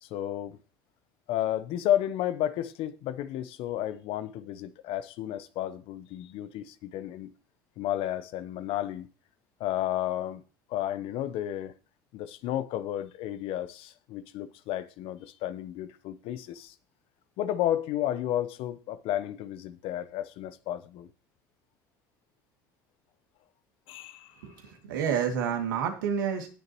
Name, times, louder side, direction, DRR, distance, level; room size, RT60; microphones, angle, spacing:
voice 1, 0.0-0.6 1.3-7.3 7.8-9.1 9.6-10.4 10.7-11.7 12.1-16.7 17.4-21.1 23.9-24.5, left 12 dB, 60° left, 0.9 m, -32 dB
voice 2, 24.4-26.5, right 7 dB, 75° right, 2.3 m, -29 dB
18.5 x 6.7 x 3.0 m
hypercardioid pair, 65°, 11 cm